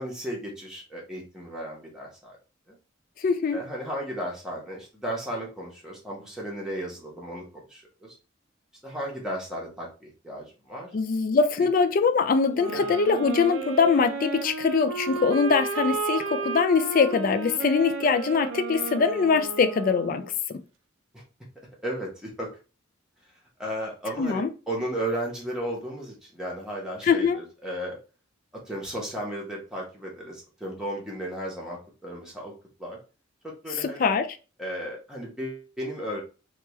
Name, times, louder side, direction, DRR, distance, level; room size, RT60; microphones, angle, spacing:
voice 1, 0.0-2.4 2.7-2.8 3.5-7.4 7.7-8.1 8.8-10.9 11.6-11.7 12.7-12.9 21.1-21.2 21.8-22.5 23.6-28.0 28.6-32.5 32.8-33.0 33.4-34.1 34.6-36.2, right 1 dB, 5° right, 0.9 m, -34 dB
voice 2, 3.2-3.6 10.9-20.3 24.2-24.5 27.0-27.4 33.8-34.3, left 5 dB, 45° left, 0.3 m, -23 dB
sound 1, 12.5-20.4, right 4 dB, 85° right, 0.5 m, -33 dB
3.0 x 2.3 x 3.0 m
head